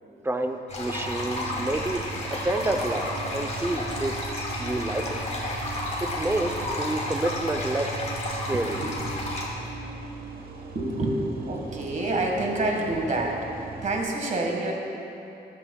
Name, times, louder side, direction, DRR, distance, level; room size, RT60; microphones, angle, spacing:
voice 1, 0.2-2.0 2.3-4.1 4.6-5.2 6.0-6.5 6.8-7.9 8.3-8.8, right 2 dB, 15° right, 5 dB, 0.6 m, -28 dB
sound 1, 0.7-9.5, left 1 dB, 40° left, 2.0 m, -32 dB
sound 2, 1.0-14.0, right 3 dB, 60° right, 1.0 m, -39 dB
voice 2, 8.5-9.1 10.7-14.7, right 2 dB, 45° right, 0 dB, 1.6 m, -29 dB
14.0 x 12.5 x 2.3 m, 2.8 s
wide cardioid pair, 140°, 18 cm